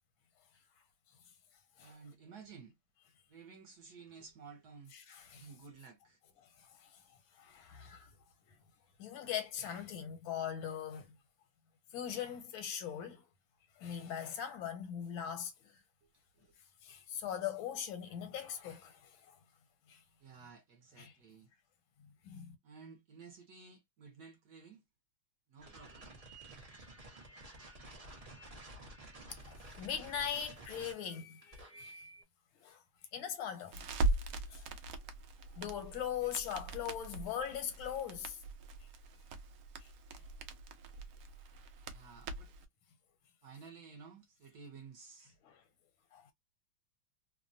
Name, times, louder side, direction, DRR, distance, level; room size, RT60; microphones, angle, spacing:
voice 1, 1.8-2.8 3.3-4.9 5.3-6.2 16.0-16.5 20.2-21.5 22.6-24.8 25.5-26.2 41.9-42.5 43.4-45.4, right 5 dB, 65° right, 1.1 m, -54 dB
voice 2, 5.1-5.5 6.6-7.0 7.3-8.1 9.0-11.1 11.9-13.3 13.8-15.8 16.8-19.4 19.9-20.0 21.0-21.1 22.2-22.5 29.3-31.4 31.8-32.1 32.6-32.8 33.1-33.8 34.2-34.7 35.5-38.4 39.8-39.9 45.4-45.6 46.1-46.3, left 9 dB, 80° left, 1.5 m, -41 dB
sound 1, 25.6-32.2, right 1 dB, 45° right, 0.5 m, -52 dB
Crackle, 33.7-42.6, right 2 dB, 85° right, 0.7 m, -40 dB
3.3 x 2.1 x 2.5 m
omnidirectional pair, 2.2 m